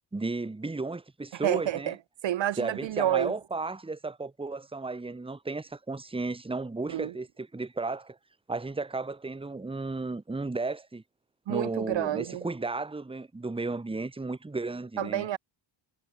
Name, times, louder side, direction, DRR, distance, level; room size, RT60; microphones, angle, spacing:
voice 1, 0.1-2.0 2.6-8.2 8.5-11.0 11.5-15.3, right 3 dB, 10° right, 1.2 m, -34 dB
voice 2, 1.3-2.0 2.2-3.3 6.9-7.1 11.5-12.5 15.0-15.4, right 12 dB, 65° right, 1.0 m, -29 dB
supercardioid pair, 65°, 49 cm